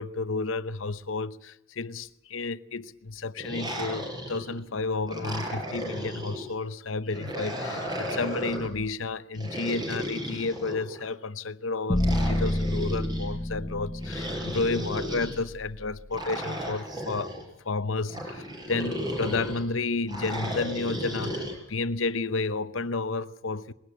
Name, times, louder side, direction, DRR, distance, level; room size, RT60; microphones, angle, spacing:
voice 1, 0.0-17.4 17.6-23.7, left 3 dB, 75° left, 0.9 m, -31 dB
sound 1, 3.4-4.6 5.1-6.5 7.1-8.7 9.3-11.1 12.0-13.3 14.0-15.4 16.1-17.4 18.1-19.6 20.1-21.5, equal, 20° right, 5.6 m, -34 dB
sound 2, 11.9-16.1, left 1 dB, 25° left, 0.9 m, -29 dB
22.0 x 17.5 x 8.3 m
head